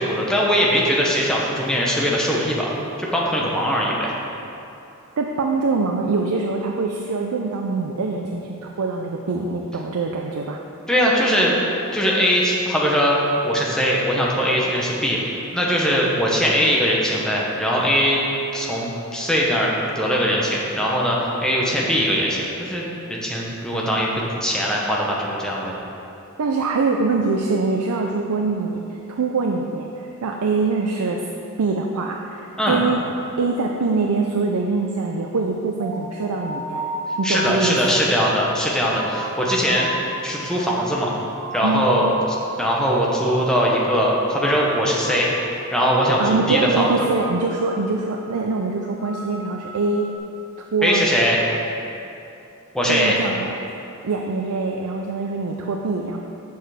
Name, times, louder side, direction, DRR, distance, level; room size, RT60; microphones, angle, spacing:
voice 1, 0.0-4.2 10.9-11.5 11.9-13.2 13.4-15.2 15.5-18.2 18.5-19.7 19.9-25.7 32.6-32.8 37.2-39.9 40.2-41.1 41.5-42.1 42.6-45.3 45.7-46.9 50.8-51.4 52.7-53.2, equal, 5° left, -4 dB, 1.0 m, -21 dB
voice 2, 5.2-10.6 26.4-31.3 31.6-33.0 33.4-36.8 37.2-38.0 41.6-42.0 46.2-50.1 50.7-51.1 52.8-53.5 54.0-56.2, right 3 dB, 90° right, 1 dB, 0.5 m, -24 dB
sound 1, 35.8-42.8 43.0-43.6 43.8-45.3 45.6-46.0 46.3-47.8 48.1-48.5 48.8-50.2, right 1 dB, 50° right, 0.8 m, -34 dB
6.9 x 6.5 x 5.0 m, 2.8 s
head